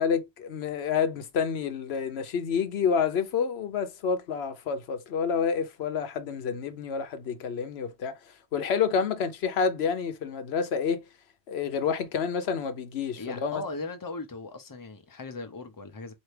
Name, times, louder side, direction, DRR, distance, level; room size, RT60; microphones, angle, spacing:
voice 1, 0.0-8.1 8.5-11.0 11.5-13.6, left 6 dB, 85° left, 1.0 m, -28 dB
voice 2, 13.2-16.1, left 3 dB, 20° left, 0.7 m, -38 dB
4.5 x 2.8 x 3.2 m
omnidirectional pair, 1.0 m